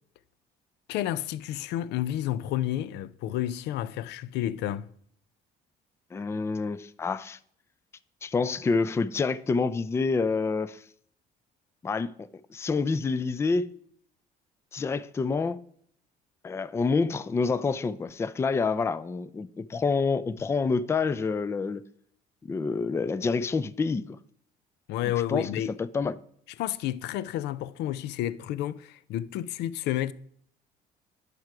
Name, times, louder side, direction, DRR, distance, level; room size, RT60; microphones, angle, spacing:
voice 1, 0.9-4.9 24.9-25.7 26.6-30.1, left 12 dB, 80° left, 0.4 m, -30 dB
voice 2, 6.1-7.4 8.2-10.8 11.8-13.7 14.7-15.6 16.4-21.8 22.4-24.2 25.3-25.5 25.8-26.1, left 4 dB, 15° left, 0.3 m, -27 dB
11.0 x 4.9 x 4.7 m
cardioid pair, 110°, 17 cm